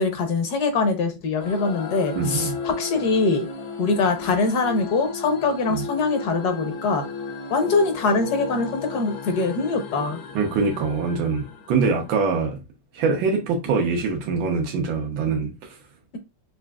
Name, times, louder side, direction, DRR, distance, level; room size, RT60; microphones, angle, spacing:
voice 1, 0.0-3.5 3.8-7.0 7.5-10.2, left 3 dB, 65° left, 1.3 m, -23 dB
sound 1, 1.4-12.3, left 4 dB, 85° left, 1.5 m, -35 dB
voice 2, 2.1-2.6 5.7-5.8 10.3-12.6 12.9-15.8, right 4 dB, 85° right, 1.7 m, -24 dB
6.1 x 2.5 x 2.3 m
omnidirectional pair, 2.0 m